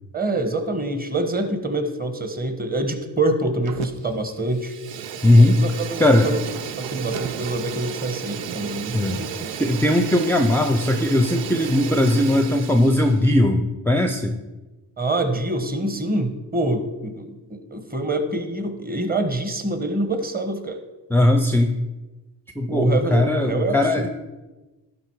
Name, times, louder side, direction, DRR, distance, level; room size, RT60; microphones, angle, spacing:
voice 1, 0.1-4.7 5.4-6.4 6.8-9.3 15.0-20.8 22.7-24.1, right 2 dB, 20° right, 7 dB, 1.4 m, -25 dB
Fire, 3.7-4.2 4.5-13.2, right 8 dB, 85° right, 0.6 m, -33 dB
voice 2, 5.2-5.6 6.0-6.3 8.9-9.2 9.6-14.4 21.1-21.7 22.6-24.1, left 1 dB, 5° left, 6 dB, 0.6 m, -18 dB
11.5 x 3.9 x 4.8 m, 1.1 s
supercardioid pair, 55°, 42 cm